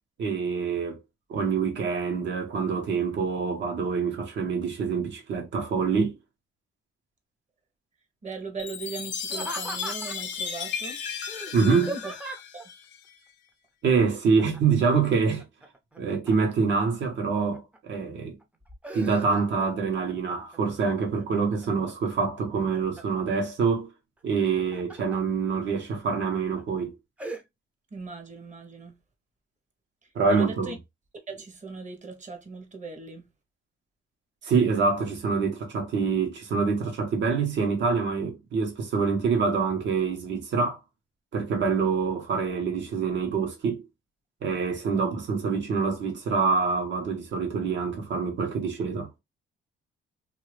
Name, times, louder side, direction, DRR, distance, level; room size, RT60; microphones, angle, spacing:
voice 1, 0.2-1.0 1.3-6.1 11.5-11.9 13.8-15.4 16.0-18.4 18.9-23.9 24.2-26.9 30.1-30.7 34.4-40.8 41.3-43.8 44.4-49.1, right 5 dB, 65° right, 1.3 m, -26 dB
voice 2, 8.2-11.0 11.5-12.1 12.5-12.7 27.9-29.0 30.0-30.8 31.3-33.3, right 4 dB, 40° right, 1.1 m, -39 dB
Chime, 8.6-13.1, left 7 dB, 65° left, 0.6 m, -35 dB
Laughter, 9.2-10.4 11.3-12.6 14.4-14.8 15.2-16.8 17.3-18.0 18.4-19.7 20.1-20.6 21.1-21.9 22.4-23.2 24.4-25.2 25.7-25.8 26.3-26.6 27.2-27.4, right 1 dB, 5° right, 0.6 m, -39 dB
2.8 x 2.5 x 3.2 m
cardioid pair, 90°, 20 cm